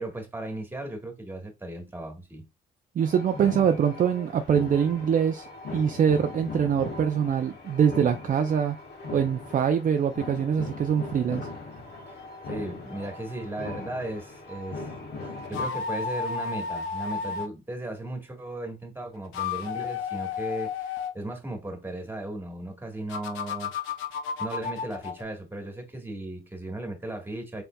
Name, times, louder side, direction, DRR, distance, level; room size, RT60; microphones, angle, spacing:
voice 1, 0.0-2.4 12.1-12.2 12.5-14.9 15.2-23.7 24.4-27.6, right 1 dB, 10° right, 1.5 m, -36 dB
sound 1, 3.0-15.7, left 3 dB, 55° left, 1.2 m, -39 dB
voice 2, 3.0-5.5 5.7-8.8 9.1-11.5, right 8 dB, 40° right, 0.4 m, -24 dB
sound 2, 15.4-17.5 19.2-21.2 23.1-25.2, left 6 dB, 90° left, 0.6 m, -32 dB
4.3 x 3.3 x 2.3 m
cardioid pair, 90°, 20 cm